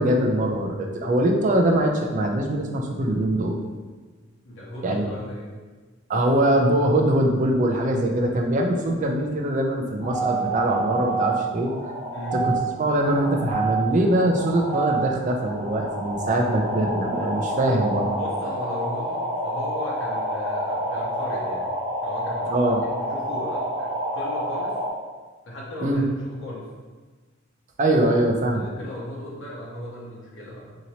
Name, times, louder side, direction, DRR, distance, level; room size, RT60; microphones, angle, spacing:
voice 1, 0.0-3.6 4.8-5.1 6.1-11.7 12.3-18.1 22.5-22.8 25.8-26.0 27.8-28.7, right 1 dB, 40° right, 1 dB, 0.4 m, -22 dB
voice 2, 4.4-5.6 12.1-12.5 18.1-21.7 22.0-22.5 23.1-24.7 25.4-26.6 28.5-30.8, left 1 dB, 70° left, -5 dB, 0.9 m, -37 dB
sound 1, 10.0-24.9, right 2 dB, 75° right, 0.9 m, -28 dB
2.9 x 2.8 x 2.7 m, 1.3 s
head